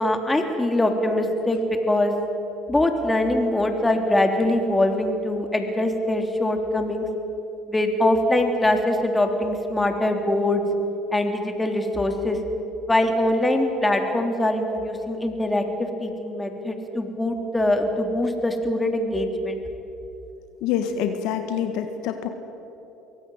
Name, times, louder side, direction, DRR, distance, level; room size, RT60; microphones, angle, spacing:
voice 1, 0.0-1.6 1.9-2.1 2.7-7.1 7.7-10.6 11.1-12.4 12.9-19.6, left 1 dB, 15° left, 4 dB, 3.5 m, -23 dB
voice 2, 20.6-22.3, left 8 dB, 75° left, 7 dB, 1.6 m, -26 dB
23.5 x 17.0 x 9.2 m, 3.0 s
hypercardioid pair, 70°, 0 cm